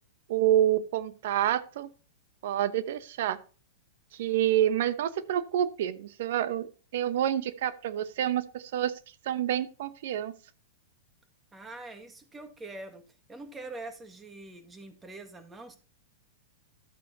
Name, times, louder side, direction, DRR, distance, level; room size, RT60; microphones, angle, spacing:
voice 1, 0.3-1.9 2.4-3.4 4.1-8.9 9.2-10.3, right 11 dB, 65° right, 15 dB, 1.0 m, -28 dB
voice 2, 11.5-15.8, right 2 dB, 15° right, 7 dB, 1.9 m, -44 dB
12.5 x 8.5 x 2.8 m, 0.36 s
hypercardioid pair, 110°, 0 cm